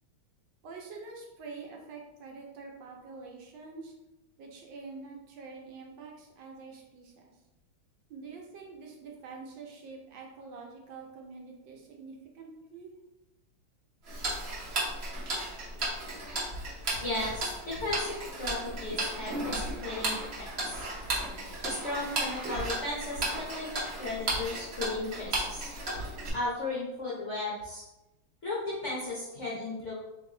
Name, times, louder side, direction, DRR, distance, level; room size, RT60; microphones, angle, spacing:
voice 1, 0.6-3.9 4.4-7.4 8.1-12.9, right 4 dB, 75° right, 0 dB, 1.3 m, -46 dB
Tick-tock, 14.1-26.3, right 1 dB, 50° right, 0.8 m, -34 dB
voice 2, 17.0-20.9 21.6-25.7 26.3-27.8 28.4-30.0, left 2 dB, 55° left, -6 dB, 0.8 m, -35 dB
3.1 x 2.9 x 3.7 m, 0.98 s
omnidirectional pair, 2.2 m